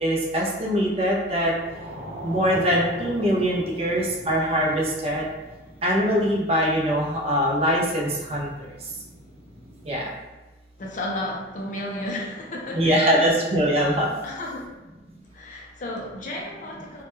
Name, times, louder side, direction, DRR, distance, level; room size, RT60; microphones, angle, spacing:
voice 1, 0.0-1.5 2.2-5.3 5.8-8.5 9.8-10.1 12.7-14.1, equal, 35° right, -3 dB, 0.4 m, -22 dB
sound 1, 1.3-10.0, right 1 dB, 85° right, 0.8 m, -42 dB
voice 2, 10.8-13.3 14.2-14.7 15.3-17.0, left 1 dB, 45° left, -1 dB, 0.4 m, -33 dB
2.2 x 2.1 x 3.0 m, 1.1 s
head